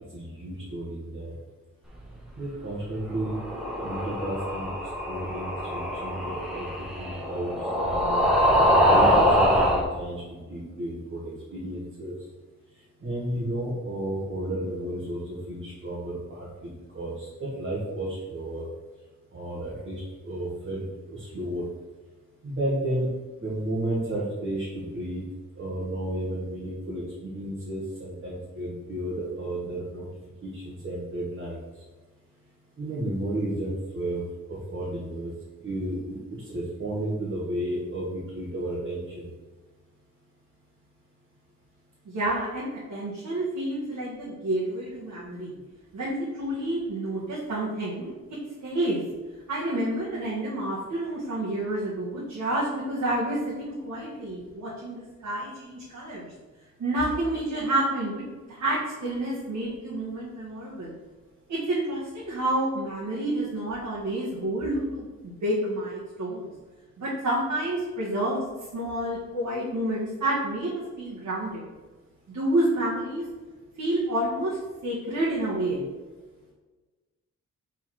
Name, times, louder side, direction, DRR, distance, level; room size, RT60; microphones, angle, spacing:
voice 1, 0.1-1.3 2.3-3.4 3.8-4.7 5.1-6.7 7.0-8.3 8.7-9.7 9.9-12.1 13.0-15.2 15.5-16.7 16.9-18.7 19.3-21.6 22.4-23.1 23.4-25.2 25.6-30.1 30.4-31.6 32.8-34.2 34.5-35.3 35.6-36.2 36.5-39.2, right 1 dB, 40° right, -7 dB, 1.4 m, -32 dB
sound 1, 3.1-9.8, equal, ahead, 1.0 m, -23 dB
voice 2, 42.1-45.5 45.9-48.1 48.6-49.0 49.5-56.3 56.8-60.9 61.5-66.5 67.0-68.4 68.7-71.7 72.3-73.3 73.8-74.6 74.8-75.8, right 1 dB, 85° right, -8 dB, 1.8 m, -29 dB
4.8 x 4.0 x 5.8 m, 1.3 s
wide cardioid pair, 180°, 29 cm